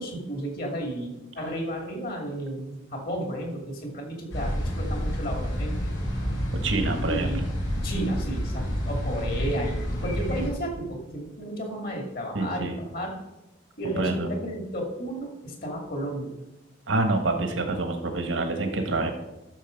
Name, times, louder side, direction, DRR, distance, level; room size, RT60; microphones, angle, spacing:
voice 1, 0.0-5.9 7.0-7.4 7.8-13.1 13.8-16.3, right 1 dB, 50° left, 2 dB, 2.5 m, -33 dB
sound 1, 4.3-10.5, equal, 85° left, 4.1 m, -29 dB
voice 2, 6.5-7.3 12.3-12.8 13.8-14.3 16.9-19.1, right 2 dB, 85° right, 5 dB, 1.4 m, -27 dB
12.5 x 6.5 x 5.2 m, 0.98 s
head